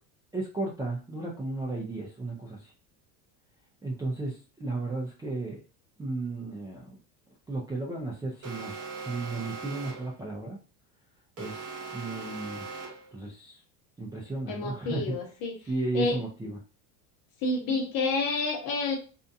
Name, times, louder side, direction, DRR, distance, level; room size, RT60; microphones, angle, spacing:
voice 1, 0.3-2.7 3.8-5.6 6.0-7.0 7.5-10.6 11.4-11.6 11.9-12.7 13.1-13.6 14.0-15.2 15.7-16.6, right 2 dB, 10° right, -4 dB, 0.4 m, -34 dB
Alarm, 8.4-10.2 11.4-13.2, right 4 dB, 30° right, 0.8 m, -40 dB
voice 2, 14.5-15.6 15.9-16.2 17.4-19.0, left 3 dB, 50° left, 3 dB, 0.9 m, -29 dB
2.6 x 2.2 x 2.6 m, 0.35 s
supercardioid pair, 105°, 46 cm